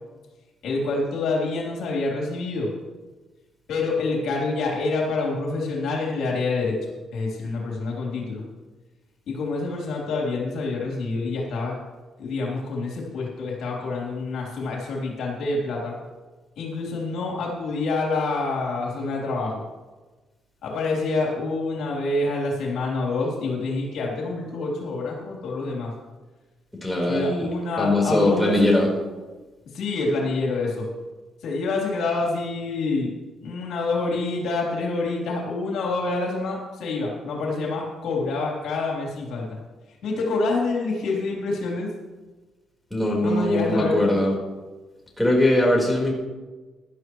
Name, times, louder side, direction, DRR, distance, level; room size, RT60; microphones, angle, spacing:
voice 1, 0.6-2.7 3.7-6.8 7.1-8.4 9.3-11.8 12.2-15.9 16.6-19.6 20.6-25.9 27.1-28.7 29.7-30.9 31.4-33.1 33.4-39.5 40.0-41.9 43.2-44.0, left 3 dB, 75° left, -2 dB, 3.3 m, -27 dB
voice 2, 26.8-27.5 27.8-28.9 42.9-44.3 45.2-46.1, left 1 dB, 5° left, -2 dB, 4.2 m, -21 dB
16.0 x 12.0 x 3.1 m, 1.2 s
cardioid pair, 90°, 0 cm